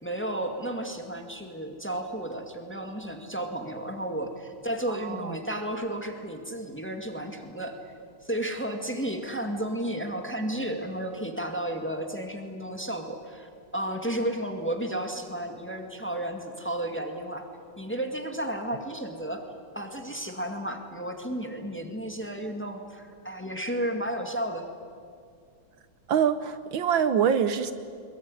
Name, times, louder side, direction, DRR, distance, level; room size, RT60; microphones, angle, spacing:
voice 1, 0.0-7.7 8.2-17.4 17.8-19.4 19.7-24.7, right 1 dB, 5° left, 4 dB, 2.0 m, -33 dB
voice 2, 5.0-5.4 26.1-27.7, right 8 dB, 70° right, 12 dB, 1.7 m, -24 dB
22.0 x 22.0 x 9.7 m, 2.3 s
omnidirectional pair, 2.2 m